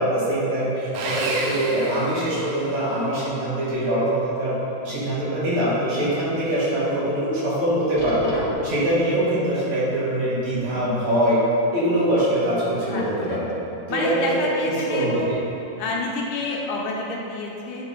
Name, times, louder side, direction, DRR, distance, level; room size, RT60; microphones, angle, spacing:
voice 1, 0.0-4.5 4.8-8.3 8.6-11.4 11.7-13.5 13.9-15.4, right 1 dB, 60° right, -9 dB, 2.9 m, -23 dB
Sawing, 0.9-2.8, right 2 dB, 80° right, 1.4 m, -30 dB
sound 1, 4.1-4.9 5.4-5.5 6.1-6.2 8.0-8.9 10.2-11.0 11.9-12.0, left 1 dB, 55° left, 1.3 m, -37 dB
voice 2, 12.9-13.4 13.9-15.3 15.8-17.8, left 2 dB, 80° left, -3 dB, 2.4 m, -28 dB
9.6 x 3.6 x 4.1 m, 2.8 s
omnidirectional pair, 3.7 m